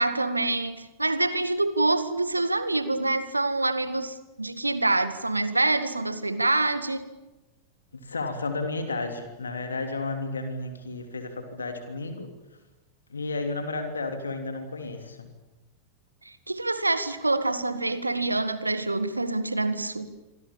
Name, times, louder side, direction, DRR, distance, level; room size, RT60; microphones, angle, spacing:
voice 1, 0.0-7.1 16.3-20.1, right 2 dB, 85° right, 1.8 m, -26 dB
voice 2, 7.9-12.3 13.1-15.3, left 3 dB, 75° left, 3.1 m, -32 dB
27.5 x 25.0 x 7.3 m
figure-of-eight pair, 90°, 0 cm